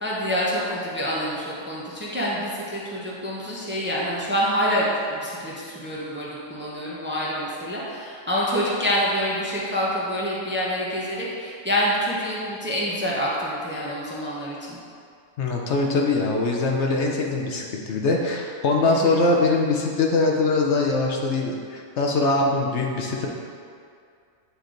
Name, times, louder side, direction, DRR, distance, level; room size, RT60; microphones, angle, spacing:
voice 1, 0.0-14.8 18.9-19.2, equal, 10° right, -6 dB, 0.7 m, -27 dB
voice 2, 15.4-23.3, left 3 dB, 65° left, 0 dB, 0.9 m, -22 dB
9.2 x 3.3 x 3.8 m, 2.3 s
omnidirectional pair, 1.4 m